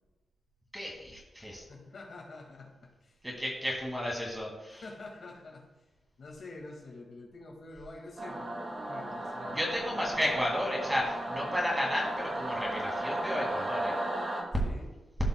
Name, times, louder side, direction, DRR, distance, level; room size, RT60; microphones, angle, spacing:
voice 1, 0.7-1.7 3.2-4.8 9.5-13.9, equal, 5° right, -2 dB, 2.1 m, -33 dB
voice 2, 1.7-3.2 4.7-5.7 6.2-10.2 14.6-14.9, left 2 dB, 55° left, -1 dB, 1.9 m, -47 dB
Singing / Musical instrument, 8.2-14.4, right 1 dB, 40° right, 1.8 m, -35 dB
15.5 x 5.3 x 2.2 m, 1.1 s
wide cardioid pair, 125°, 0 cm